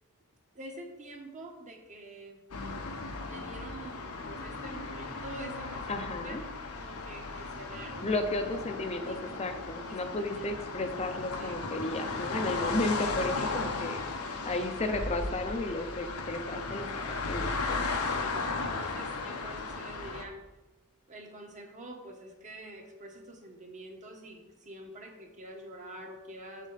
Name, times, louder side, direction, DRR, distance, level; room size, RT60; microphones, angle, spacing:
voice 1, 0.5-2.4 3.2-5.8 6.2-6.3 6.7-8.1 9.0-9.4 9.8-10.0 10.3-10.5 11.4-11.6 13.3-13.5 14.0-14.4 18.1-20.4 21.1-26.7, right 1 dB, 35° right, 2 dB, 1.3 m, -46 dB
sound 1, 2.5-20.2, left 3 dB, 90° left, 1.0 m, -36 dB
voice 2, 5.9-6.4 8.0-14.0 14.4-16.9 17.3-17.8, left 2 dB, 30° left, 6 dB, 0.6 m, -33 dB
7.3 x 7.3 x 4.1 m, 1.1 s
head